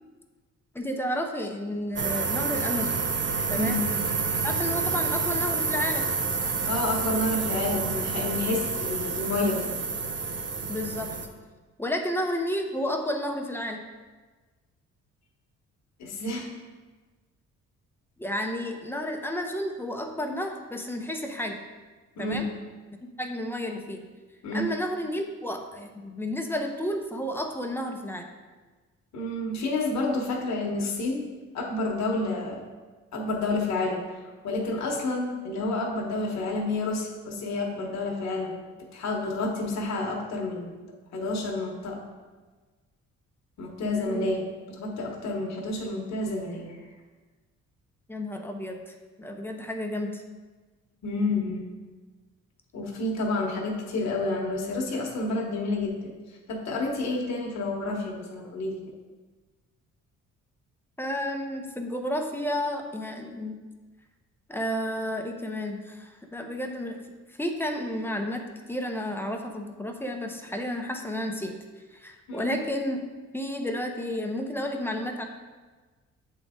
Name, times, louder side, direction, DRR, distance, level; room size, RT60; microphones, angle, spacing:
voice 1, 0.7-2.9 3.5-3.8 4.4-6.1 10.7-11.1 11.8-13.8 18.2-21.6 22.2-22.5 23.2-24.0 24.5-28.3 43.9-44.3 48.1-50.2 61.0-63.6 64.5-67.0 67.3-71.5 71.9-73.0 73.3-75.2, left 1 dB, 5° left, 3 dB, 0.7 m, -31 dB
sound 1, 2.0-11.3, right 5 dB, 40° right, 0.7 m, -28 dB
voice 2, 3.5-3.9 6.6-9.8 16.0-16.5 22.2-22.4 24.4-24.7 29.1-31.3 31.5-32.6 33.1-34.0 34.4-38.6 38.9-40.7 41.1-42.1 43.6-46.8 51.0-51.7 52.7-56.1 56.5-58.8 72.3-72.6, left 2 dB, 65° left, 0 dB, 1.3 m, -29 dB
8.0 x 4.0 x 3.6 m, 1.3 s
cardioid pair, 90°, 30 cm